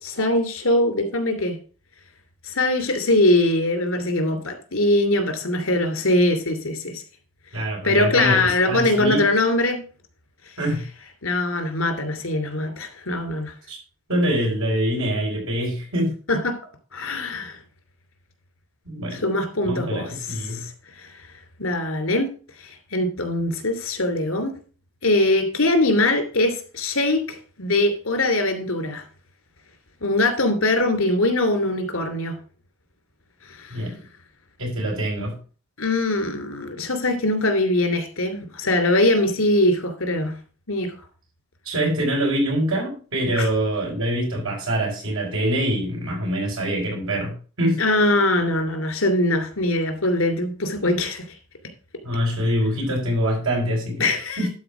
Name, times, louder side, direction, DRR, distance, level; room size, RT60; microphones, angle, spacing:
voice 1, 0.0-1.6 2.4-7.0 7.8-9.8 11.2-13.5 16.3-16.5 16.9-17.6 19.1-20.7 21.0-21.1 21.6-22.3 22.6-24.5 25.0-29.0 30.0-32.3 33.5-34.0 35.8-40.3 40.7-40.9 43.4-43.5 47.8-51.4 54.0-54.5, left 2 dB, 75° left, 6 dB, 2.7 m, -22 dB
voice 2, 7.5-8.4 8.7-9.2 10.6-10.8 13.7-13.8 14.1-16.1 18.9-19.2 19.6-20.6 33.7-33.9 34.6-35.4 41.6-47.8 52.0-54.1 54.4-54.5, equal, 80° right, -2 dB, 5.7 m, -24 dB
11.5 x 4.3 x 6.0 m, 0.38 s
head